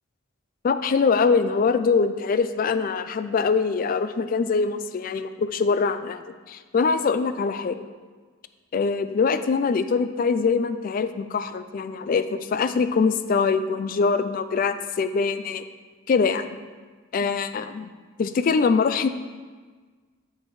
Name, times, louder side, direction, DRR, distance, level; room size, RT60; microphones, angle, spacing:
voice 1, 0.6-7.8 8.7-15.6 16.1-16.6 17.1-17.8 18.2-19.1, left 5 dB, 45° left, 10 dB, 0.3 m, -23 dB
13.0 x 4.6 x 3.1 m, 1.4 s
head